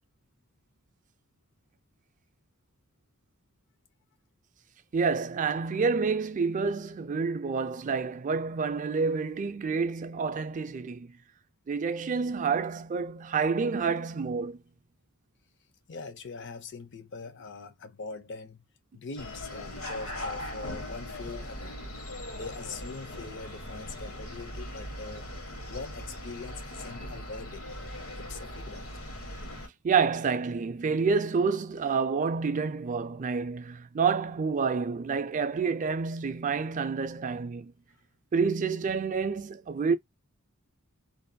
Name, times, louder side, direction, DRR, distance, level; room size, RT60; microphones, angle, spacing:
voice 1, 4.9-11.2 11.7-14.6 29.8-37.7 38.3-40.0, right 5 dB, 35° right, 0.4 m, -28 dB
voice 2, 15.9-18.6 18.9-21.8 22.3-25.3 25.7-27.6 28.2-28.9, left 4 dB, 55° left, 0.6 m, -42 dB
sound 1, 19.2-29.7, left 1 dB, 80° left, 1.2 m, -40 dB
2.6 x 2.2 x 2.5 m
head